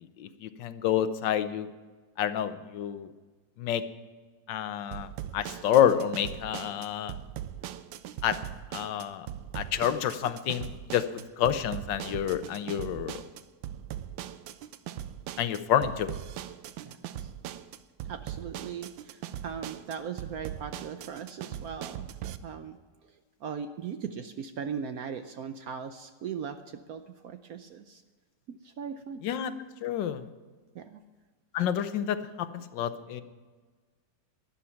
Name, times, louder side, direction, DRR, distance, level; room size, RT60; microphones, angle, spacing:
voice 1, 0.2-1.7 2.2-3.1 3.6-3.8 4.5-7.1 8.2-8.4 8.7-9.3 9.5-13.2 15.4-16.1 29.2-29.5 29.8-30.2 31.5-33.2, left 10 dB, 75° left, 12 dB, 1.4 m, -28 dB
sound 1, 4.9-22.4, right 11 dB, 85° right, 1.4 m, -40 dB
voice 2, 16.8-17.3 18.1-22.1 22.4-22.8 23.4-28.0 28.5-29.2 30.7-31.0, right 7 dB, 65° right, 8 dB, 0.9 m, -39 dB
13.0 x 10.5 x 5.7 m, 1.4 s
omnidirectional pair, 2.0 m